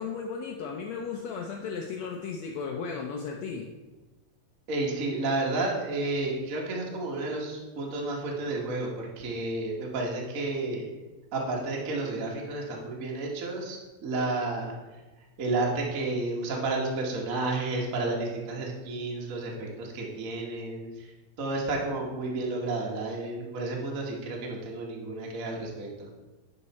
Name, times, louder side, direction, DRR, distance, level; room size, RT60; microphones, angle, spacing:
voice 1, 0.0-3.7, left 5 dB, 80° left, 1 dB, 1.5 m, -35 dB
voice 2, 4.7-10.9 11.3-14.7 15.4-21.1 21.4-26.1, right 2 dB, 90° right, -1 dB, 0.7 m, -31 dB
10.0 x 4.7 x 4.2 m, 1.2 s
omnidirectional pair, 3.8 m